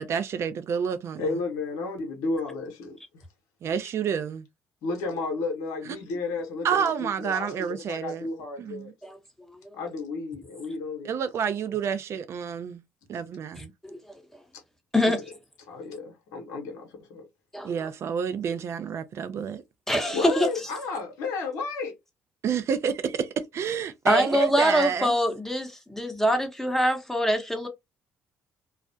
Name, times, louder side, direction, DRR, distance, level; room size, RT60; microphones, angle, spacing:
voice 1, 0.0-1.4 3.6-4.4 5.8-6.0 6.6-8.3 8.6-8.8 11.0-12.8 13.1-13.7 17.6-19.6 22.4-25.2, right 7 dB, 50° right, 0.5 m, -29 dB
voice 2, 1.2-3.0 4.8-7.5 7.9-8.8 9.7-11.1 15.7-17.2 20.1-21.9, left 3 dB, 75° left, 0.8 m, -32 dB
voice 3, 13.6-14.0 14.9-15.2 17.5-17.7 19.9-20.5 24.0-27.7, equal, 5° left, 0.9 m, -24 dB
2.4 x 2.0 x 2.6 m
hypercardioid pair, 55°, 6 cm